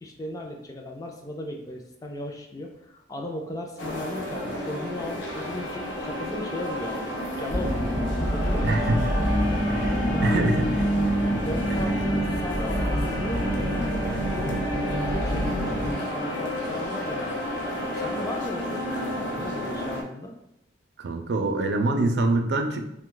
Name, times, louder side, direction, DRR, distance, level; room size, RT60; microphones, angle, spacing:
voice 1, 0.0-7.0 7.4-8.0 8.3-9.3 10.1-10.6 11.4-14.6 15.1-17.3 17.9-20.3, left 1 dB, 20° left, 2 dB, 0.3 m, -36 dB
sound 1, 3.8-20.0, left 1 dB, 85° left, 0.6 m, -31 dB
sound 2, 7.5-15.9, equal, 70° left, 1.0 m, -26 dB
voice 2, 8.6-9.0 9.7-10.0 10.2-10.7 19.3-19.4 21.0-22.9, right 2 dB, 65° right, 5 dB, 0.4 m, -25 dB
2.7 x 2.2 x 3.7 m, 0.82 s
head